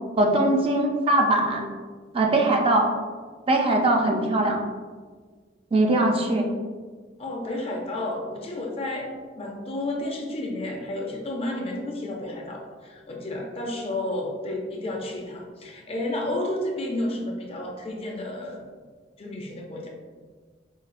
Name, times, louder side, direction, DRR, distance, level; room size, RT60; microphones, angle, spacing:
voice 1, 0.2-1.7 2.1-2.9 3.5-4.6 5.7-6.5, right 2 dB, 30° right, 1 dB, 0.4 m, -21 dB
voice 2, 7.2-9.1 9.4-18.6 19.2-19.9, left 1 dB, 35° left, 1 dB, 0.5 m, -31 dB
4.8 x 2.4 x 2.4 m, 1.5 s
head